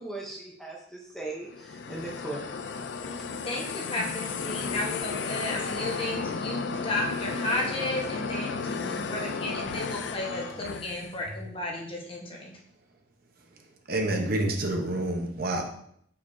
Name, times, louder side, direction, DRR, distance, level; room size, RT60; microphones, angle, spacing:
voice 1, 0.0-2.5, right 2 dB, 5° left, -2 dB, 0.7 m, -38 dB
sound 1, 1.4-11.2, left 5 dB, 75° left, 0.4 m, -34 dB
voice 2, 3.0-12.6, left 1 dB, 30° left, -1 dB, 1.2 m, -33 dB
voice 3, 13.9-15.6, right 1 dB, 55° right, 2 dB, 1.0 m, -28 dB
6.7 x 5.4 x 2.7 m, 0.68 s
head